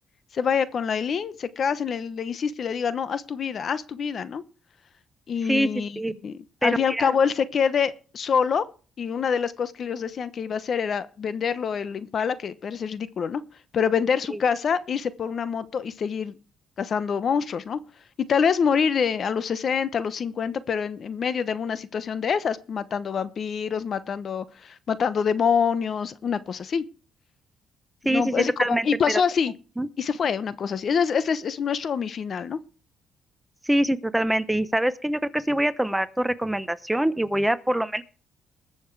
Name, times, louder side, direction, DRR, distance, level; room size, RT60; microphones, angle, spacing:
voice 1, 0.3-4.4 5.3-8.7 9.0-13.4 13.7-16.4 16.8-17.8 18.3-26.8 28.0-29.5 30.0-32.6, left 6 dB, 55° left, 1.0 m, -26 dB
voice 2, 6.6-7.1 14.3-14.4 28.0-29.2 29.8-29.9 33.6-38.0, right 1 dB, 5° right, 0.9 m, -24 dB
21.0 x 7.2 x 4.8 m
cardioid pair, 90°, 0 cm